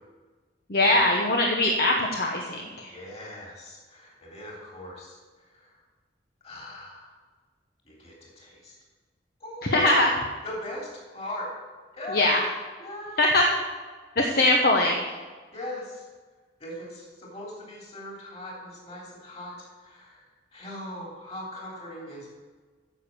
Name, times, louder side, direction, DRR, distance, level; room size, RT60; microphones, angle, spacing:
voice 1, 0.7-2.9 9.6-10.1 12.1-12.5 13.2-13.5 14.2-15.0, left 1 dB, 55° left, 1 dB, 1.0 m, -22 dB
voice 2, 2.9-5.2 5.5-5.6 6.4-7.1 7.9-8.7 9.4-10.0 10.4-11.5 11.9-12.3 12.8-13.3 14.4-14.5 15.5-16.0 16.6-20.2 20.5-22.3, left 1 dB, 35° left, -3 dB, 3.3 m, -39 dB
9.6 x 6.9 x 7.2 m, 1.4 s
head